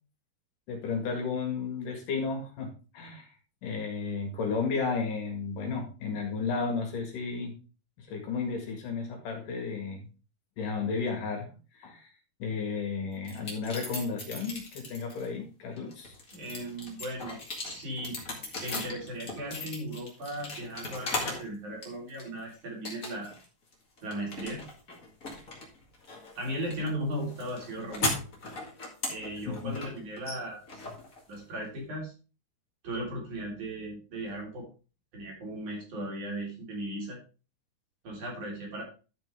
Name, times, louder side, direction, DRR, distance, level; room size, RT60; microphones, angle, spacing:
voice 1, 0.7-3.3 3.6-7.5 8.0-10.1 10.6-11.5 11.7-12.1 12.4-16.1 29.5-29.7, left 4 dB, 65° left, 2 dB, 3.4 m, -33 dB
sound 1, 13.2-15.3 15.8-21.5 21.8-22.4 22.8-23.4 23.7-31.7, left 2 dB, 30° left, 1.8 m, -38 dB
voice 2, 16.3-18.2 18.6-23.3 24.0-24.6 26.4-28.1 29.1-30.8 31.3-32.1 32.8-34.7 35.1-37.2 38.0-38.8, right 1 dB, 55° right, -2 dB, 4.9 m, -37 dB
12.0 x 6.0 x 3.5 m, 0.34 s
omnidirectional pair, 4.2 m